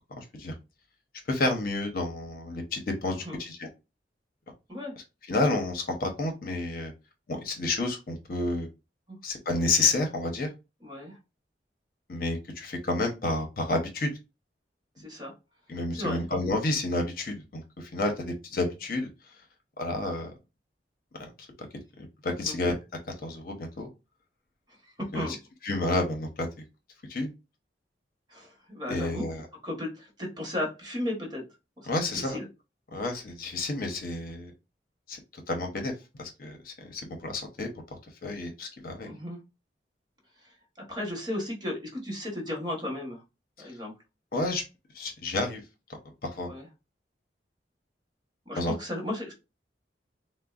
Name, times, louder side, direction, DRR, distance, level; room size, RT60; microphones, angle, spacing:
voice 1, 0.2-0.5 1.3-3.7 5.3-6.9 7.3-8.7 9.2-10.5 12.1-14.1 15.7-19.1 19.8-20.3 21.2-21.3 22.2-22.7 23.2-23.9 25.1-25.3 25.6-26.5 27.1-27.3 28.9-29.4 31.9-32.4 32.9-34.5 35.1-35.2 35.5-37.7 38.2-39.1 44.3-44.6 45.0-45.6 46.2-46.5 48.6-48.7, left 2 dB, 55° left, 3 dB, 0.7 m, -30 dB
voice 2, 10.8-11.2 15.0-15.3 15.9-16.2 22.3-22.6 25.0-25.4 28.3-29.2 29.6-31.4 31.8-32.5 39.0-39.4 40.8-43.2 43.6-43.9 46.4-46.7 48.5-49.3, left 1 dB, 25° right, 0 dB, 1.0 m, -35 dB
3.7 x 2.0 x 2.3 m, 0.26 s
head